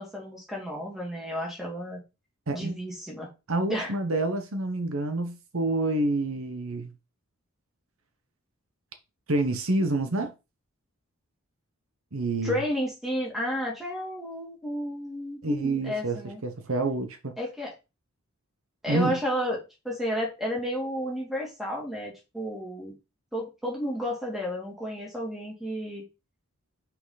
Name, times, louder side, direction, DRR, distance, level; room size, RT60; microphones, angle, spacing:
voice 1, 0.0-2.0 2.5-3.3 3.7-3.9 12.4-16.4 17.4-17.7 18.8-22.9 23.3-26.0, equal, ahead, 2.8 m, -32 dB
voice 2, 2.5-2.8 3.5-6.9 9.3-10.3 12.1-12.6 15.4-17.3 18.9-19.2, right 2 dB, 70° right, 1.1 m, -28 dB
5.9 x 5.7 x 4.1 m
head